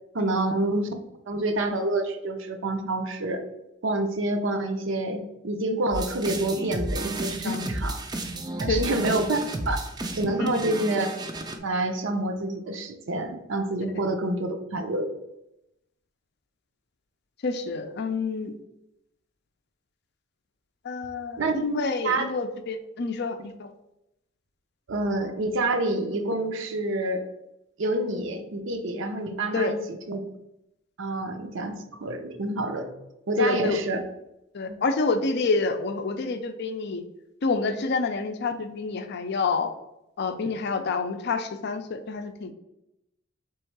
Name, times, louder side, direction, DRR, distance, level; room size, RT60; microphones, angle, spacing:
voice 1, 0.1-0.9 1.3-3.4 3.8-8.0 8.6-9.8 10.1-11.1 11.6-15.1 21.4-21.5 22.0-22.2 24.9-27.2 27.8-30.2 31.0-31.7 32.0-32.9 33.3-34.0 34.7-34.8, right 2 dB, 65° right, 6 dB, 0.6 m, -27 dB
sound 1, 5.9-11.5, right 2 dB, 20° right, 0.4 m, -32 dB
voice 2, 8.7-9.0 10.4-10.7 17.4-18.5 20.8-23.7 29.5-29.7 33.4-33.8 34.5-37.0 37.4-39.7 40.2-42.5, left 4 dB, 55° left, 8 dB, 0.5 m, -28 dB
3.6 x 3.1 x 4.5 m, 0.87 s
head